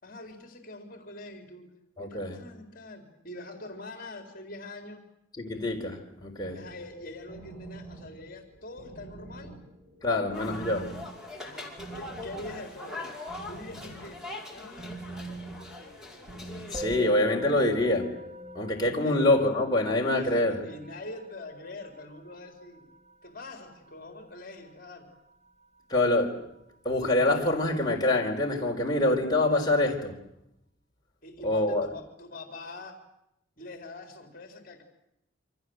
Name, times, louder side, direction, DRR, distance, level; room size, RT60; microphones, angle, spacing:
voice 1, 0.0-1.7 2.0-5.0 6.5-9.5 10.1-10.2 11.4-13.2 13.5-14.2 14.5-15.0 19.0-19.2 20.2-22.9 23.2-25.1 31.2-33.0 33.6-34.8, left 2 dB, 45° left, 4.0 m, -44 dB
voice 2, 2.0-2.4 5.4-6.7 10.0-10.9 16.7-18.1 18.5-20.6 25.9-26.4 26.8-30.2 31.4-31.9, left 2 dB, 20° left, 4.5 m, -25 dB
sound 1, 6.4-16.6, right 2 dB, 75° right, 6.7 m, -46 dB
sound 2, 10.3-16.9, left 2 dB, 5° right, 5.2 m, -42 dB
Musical instrument, 16.7-26.3, left 1 dB, 35° right, 2.9 m, -44 dB
28.0 x 26.5 x 8.0 m
head